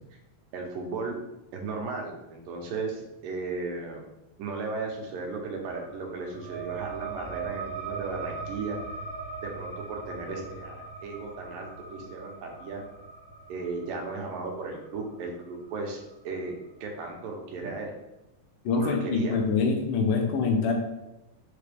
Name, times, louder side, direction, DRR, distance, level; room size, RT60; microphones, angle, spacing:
voice 1, 0.5-1.2 1.5-4.0 4.4-8.8 9.4-12.8 13.5-17.9 18.8-19.4, right 3 dB, 85° right, 1 dB, 2.7 m, -35 dB
sound 1, 5.7-16.8, right 5 dB, 65° right, 2.0 m, -40 dB
voice 2, 18.7-20.7, left 4 dB, 80° left, 2 dB, 2.4 m, -25 dB
6.4 x 4.9 x 3.4 m, 0.93 s
omnidirectional pair, 3.8 m